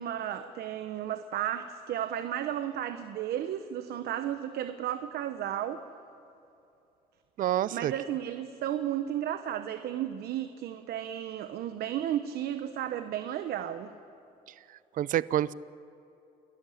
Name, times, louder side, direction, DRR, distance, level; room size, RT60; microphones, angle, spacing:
voice 1, 0.0-5.8 7.7-13.9, right 11 dB, 70° right, 10 dB, 1.0 m, -33 dB
voice 2, 7.4-7.9 14.7-15.5, right 12 dB, 55° right, 19 dB, 0.5 m, -28 dB
28.5 x 13.5 x 10.0 m, 2.8 s
cardioid pair, 110°, 17 cm